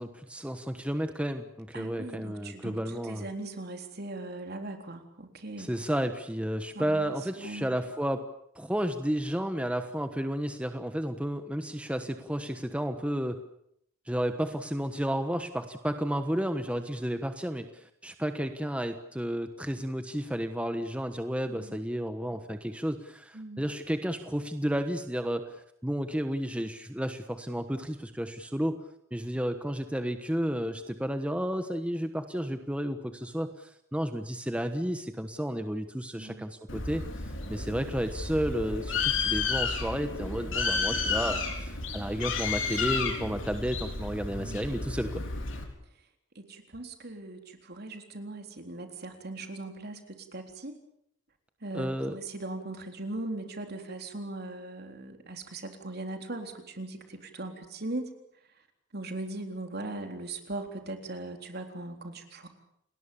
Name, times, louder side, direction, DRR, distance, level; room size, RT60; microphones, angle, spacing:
voice 1, 0.0-3.3 5.6-8.2 8.5-13.4 14.1-25.6 25.8-28.8 29.1-45.2 51.7-52.2, equal, 5° right, 7 dB, 1.2 m, -32 dB
voice 2, 1.7-5.7 6.7-7.8 21.5-21.8 23.3-23.6 36.2-36.5 44.4-44.9 46.4-50.8 51.6-58.1 58.9-62.5, right 2 dB, 55° right, 5 dB, 3.8 m, -39 dB
Bird, 36.7-45.6, left 4 dB, 80° left, 4.2 m, -32 dB
29.5 x 20.0 x 7.1 m, 0.74 s
head